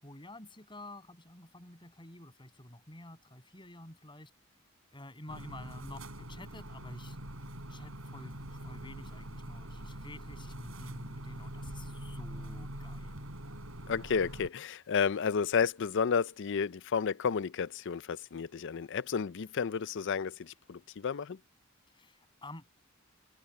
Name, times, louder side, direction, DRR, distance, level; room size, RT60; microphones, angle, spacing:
voice 1, 0.0-4.3 4.9-7.2 7.4-13.3 21.9-22.6, left 1 dB, 25° left, 7.7 m, -50 dB
sound 1, 5.3-14.5, right 1 dB, 75° right, 6.4 m, -44 dB
voice 2, 13.9-21.4, left 6 dB, 60° left, 0.5 m, -32 dB
head